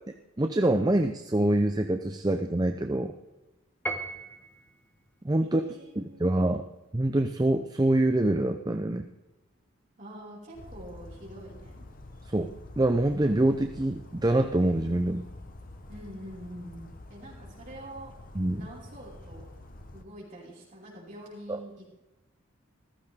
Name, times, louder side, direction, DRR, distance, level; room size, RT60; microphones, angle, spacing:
voice 1, 0.4-3.1 5.2-5.6 6.0-6.6 6.9-9.0 12.3-12.5 12.8-15.3 18.3-18.6 21.5-21.6, right 1 dB, 20° right, 6 dB, 0.5 m, -25 dB
Piano, 3.9-4.8, right 2 dB, 10° left, 1.1 m, -35 dB
voice 2, 5.4-6.6 10.0-11.8 15.9-18.1 18.5-19.5 19.9-22.0, right 1 dB, 40° right, -6 dB, 5.5 m, -45 dB
Bird vocalization bird call bird song, 10.5-20.0, left 1 dB, 40° left, 1.0 m, -47 dB
15.0 x 14.0 x 3.6 m, 1.0 s
head